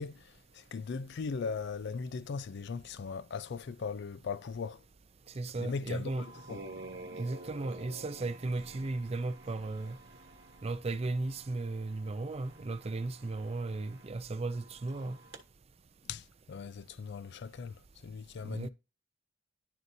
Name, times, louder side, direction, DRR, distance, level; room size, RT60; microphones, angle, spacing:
voice 1, 0.0-4.8 5.6-6.6 16.0-18.7, left 5 dB, 55° left, 0.3 m, -39 dB
voice 2, 5.3-6.2 7.2-10.0 10.6-15.2 18.4-18.7, right 2 dB, 30° right, 0.4 m, -35 dB
sound 1, 6.1-15.4, right 2 dB, 55° right, 1.1 m, -50 dB
11.0 x 4.0 x 2.7 m
head